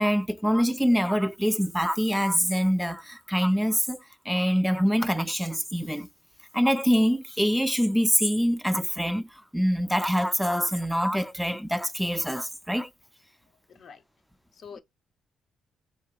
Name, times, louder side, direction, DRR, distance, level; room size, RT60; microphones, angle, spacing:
voice 1, 0.0-6.1 6.5-12.9, equal, ahead, 0.3 m, -25 dB
voice 2, 13.7-14.0 14.5-14.8, left 6 dB, 55° left, 0.6 m, -45 dB
4.3 x 2.7 x 2.3 m
cardioid pair, 90°, 0 cm